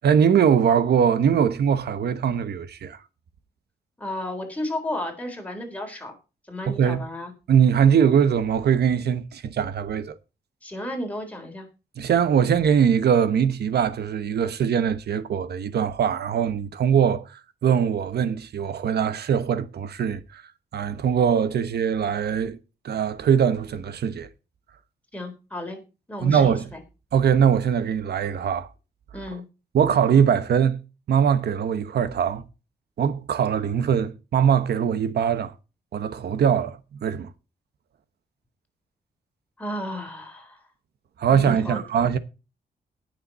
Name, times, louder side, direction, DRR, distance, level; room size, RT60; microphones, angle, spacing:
voice 1, 0.0-3.0 6.7-7.0 7.5-10.1 12.0-20.4 20.7-22.6 22.8-24.3 26.2-26.6 27.1-28.7 29.7-30.8 31.1-32.4 33.0-35.5 35.9-37.3 41.2-42.2, right 7 dB, 80° right, 1.1 m, -21 dB
voice 2, 4.0-6.1 6.5-7.3 10.6-11.7 25.1-25.8 26.1-26.8 29.1-29.4 39.6-40.6 41.3-41.8, left 1 dB, 10° left, 4.0 m, -33 dB
19.5 x 6.7 x 4.2 m
wide cardioid pair, 135°, 17 cm